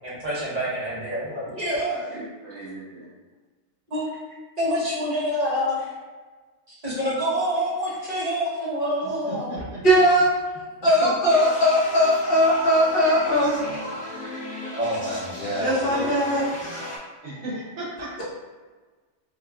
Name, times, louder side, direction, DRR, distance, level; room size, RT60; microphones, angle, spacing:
voice 1, 0.0-2.2 3.9-4.1 4.6-5.9 6.7-9.6 11.0-11.1 14.7-16.1, equal, 35° right, -8 dB, 1.1 m, -27 dB
voice 2, 1.9-3.1 9.2-9.8 15.8-16.0 17.2-18.2, right 1 dB, 70° right, -6 dB, 1.3 m, -36 dB
voice 3, 9.6-10.4 10.8-13.6 15.6-16.5 18.2-18.3, equal, 55° left, -7 dB, 1.1 m, -19 dB
sound 1, 11.2-17.0, left 1 dB, 10° left, 0.5 m, -35 dB
4.8 x 2.3 x 2.3 m, 1.4 s
omnidirectional pair, 1.2 m